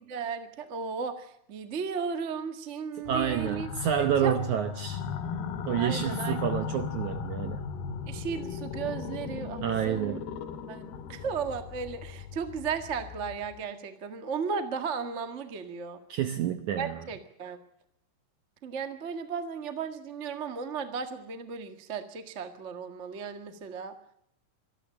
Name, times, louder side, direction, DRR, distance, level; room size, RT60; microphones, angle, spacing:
voice 1, 0.1-3.7 4.0-4.3 5.8-6.4 8.1-10.2 10.7-16.0 16.8-17.6 18.6-23.9, right 6 dB, 45° right, 7 dB, 0.9 m, -35 dB
sound 1, 3.1-13.6, left 6 dB, 80° left, 3.4 m, -37 dB
voice 2, 3.1-5.0 5.7-7.6 9.6-10.2 16.1-17.0, right 9 dB, 75° right, 9 dB, 1.8 m, -29 dB
25.5 x 13.0 x 8.9 m, 0.71 s
omnidirectional pair, 4.5 m